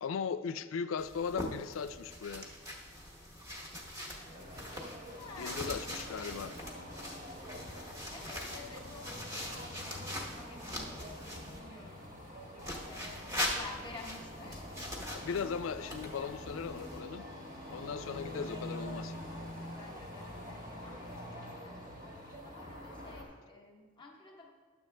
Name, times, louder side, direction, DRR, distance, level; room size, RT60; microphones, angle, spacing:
voice 1, 0.0-2.5 5.4-6.5 15.1-17.3 17.7-19.2, left 6 dB, 70° left, 13 dB, 0.4 m, -37 dB
sound 1, 1.0-11.6 12.6-17.0, left 1 dB, 15° right, 0.9 m, -42 dB
voice 2, 4.1-4.8 5.1-5.8 8.1-12.0 12.8-14.8 19.7-21.8 22.5-24.5, left 3 dB, 20° left, 0 dB, 0.9 m, -51 dB
sound 2, 4.2-23.2, equal, 40° right, 1.3 m, -46 dB
10.5 x 7.1 x 3.2 m, 1.5 s
head